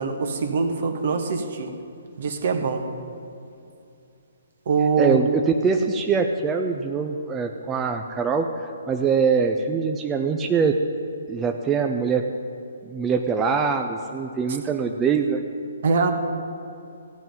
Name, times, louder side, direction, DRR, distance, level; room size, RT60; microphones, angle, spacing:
voice 1, 0.0-1.7 2.2-2.9 4.7-5.2 15.8-16.1, right 4 dB, 55° right, 6 dB, 1.4 m, -23 dB
voice 2, 5.0-10.8 11.3-12.2 12.8-15.4, right 5 dB, 15° right, 4 dB, 0.6 m, -23 dB
15.0 x 5.5 x 9.1 m, 2.6 s
figure-of-eight pair, 135°, 0 cm